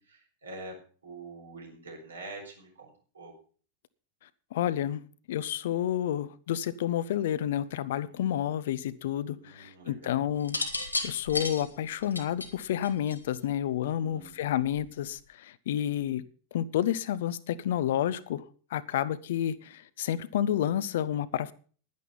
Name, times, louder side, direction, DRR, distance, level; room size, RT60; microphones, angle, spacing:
voice 1, 0.0-2.9 3.1-3.3 8.1-8.5 9.3-10.3 13.8-14.7, right 2 dB, 75° right, 1 dB, 4.5 m, -46 dB
voice 2, 4.5-5.0 5.3-10.6 11.0-16.2 16.5-18.4 18.7-21.5, left 11 dB, 55° left, 16 dB, 0.7 m, -30 dB
sound 1, 10.4-13.6 14.6-15.0, left 3 dB, 85° left, 1.7 m, -33 dB
11.0 x 10.5 x 5.4 m, 0.41 s
figure-of-eight pair, 90°, 0 cm